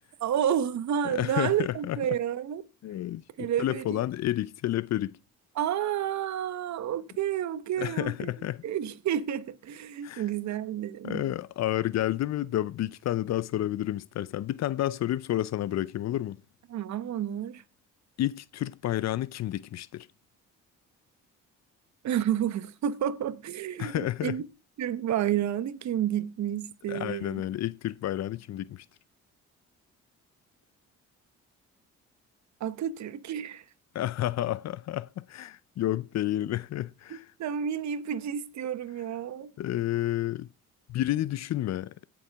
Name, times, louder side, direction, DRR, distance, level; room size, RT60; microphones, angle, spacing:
voice 1, 0.2-2.6 3.4-4.0 5.6-8.3 8.6-11.2 16.7-17.6 22.0-24.4 24.8-27.4 32.6-33.6 37.4-39.5, right 10 dB, 65° right, 1.0 m, -30 dB
voice 2, 1.0-2.0 2.8-5.2 7.8-8.6 10.0-10.2 11.0-16.4 18.2-20.1 23.8-24.4 26.9-28.9 33.9-37.3 39.6-40.5 40.9-41.9, left 13 dB, 60° left, 0.6 m, -30 dB
18.0 x 7.1 x 3.5 m
cardioid pair, 90°, 30 cm